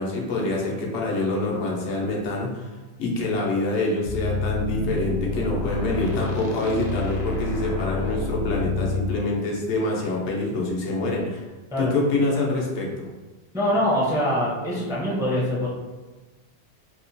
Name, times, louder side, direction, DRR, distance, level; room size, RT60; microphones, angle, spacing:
voice 1, 0.0-11.5 11.8-13.1, left 2 dB, 90° left, -2 dB, 1.0 m, -26 dB
sound 1, 4.1-9.2, left 3 dB, 70° left, 0.8 m, -28 dB
voice 2, 13.5-15.7, equal, 5° right, -6 dB, 0.4 m, -23 dB
2.8 x 2.2 x 2.6 m, 1.2 s
omnidirectional pair, 1.1 m